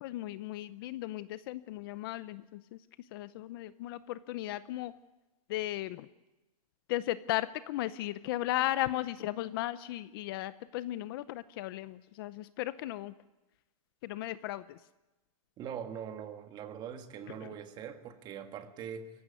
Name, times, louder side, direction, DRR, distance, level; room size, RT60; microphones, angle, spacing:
voice 1, 0.0-2.4 3.1-4.9 5.5-6.1 6.9-13.1 14.0-14.6, left 15 dB, 40° left, 15 dB, 0.7 m, -35 dB
voice 2, 15.6-19.1, right 8 dB, 20° right, 7 dB, 1.7 m, -42 dB
23.0 x 16.0 x 9.5 m, 1.1 s
supercardioid pair, 165°, 19 cm